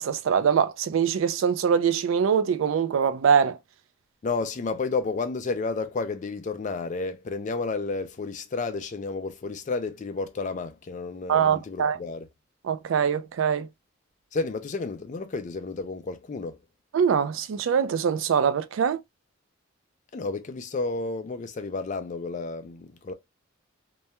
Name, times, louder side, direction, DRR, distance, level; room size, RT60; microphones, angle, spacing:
voice 1, 0.0-3.6 11.3-12.0 12.7-13.7 16.9-19.0, right 7 dB, 70° right, 0.3 m, -23 dB
voice 2, 4.2-12.3 14.3-16.6 20.1-23.1, left 3 dB, 35° left, 0.3 m, -31 dB
2.3 x 2.1 x 2.8 m
head